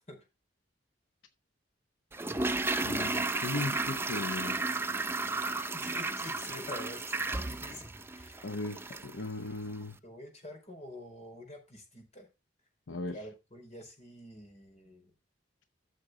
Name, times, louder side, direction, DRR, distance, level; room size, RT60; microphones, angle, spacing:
Toilet flush, 2.1-9.2 9.5-9.6, right 3 dB, 15° right, 0.5 m, -33 dB
voice 1, 2.8-4.6 8.4-10.0 12.9-13.2, left 2 dB, 80° left, 0.8 m, -37 dB
voice 2, 5.6-8.5 10.0-12.3 13.1-15.1, left 1 dB, 35° left, 4.9 m, -47 dB
14.0 x 6.6 x 3.8 m
head